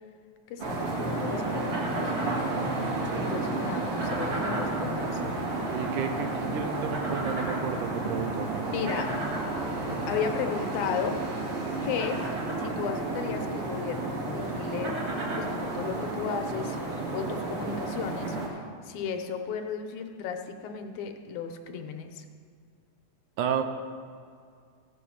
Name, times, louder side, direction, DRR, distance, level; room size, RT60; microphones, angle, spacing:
voice 1, 0.5-2.1 3.1-5.2 8.7-9.1 10.1-11.2 11.8-22.3, left 6 dB, 75° left, 5 dB, 2.2 m, -35 dB
sound 1, 0.6-18.5, right 2 dB, 55° right, 2.4 m, -31 dB
voice 2, 5.7-8.7 23.4-23.6, right 8 dB, 90° right, 7 dB, 2.3 m, -32 dB
15.0 x 5.1 x 7.0 m, 2.2 s
omnidirectional pair, 3.6 m